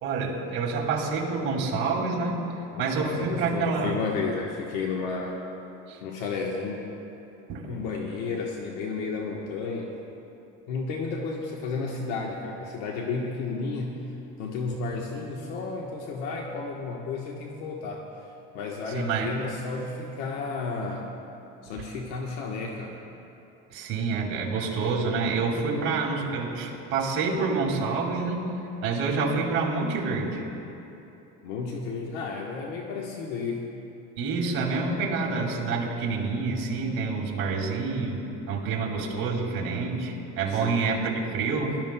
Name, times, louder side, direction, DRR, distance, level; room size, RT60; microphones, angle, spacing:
voice 1, 0.0-2.4 2.8-4.0 5.9-6.0 7.5-7.7 18.9-19.3 23.7-28.4 28.8-30.4 34.2-41.8, right 4 dB, 45° right, -2 dB, 2.3 m, -27 dB
voice 2, 2.7-5.4 6.0-6.9 7.7-10.0 10.7-14.0 14.4-18.1 18.5-21.2 21.6-23.0 31.4-33.6 35.2-35.4 40.5-40.9, left 4 dB, 75° left, -1 dB, 1.2 m, -32 dB
23.0 x 12.5 x 2.2 m, 2.9 s
cardioid pair, 160°, 30 cm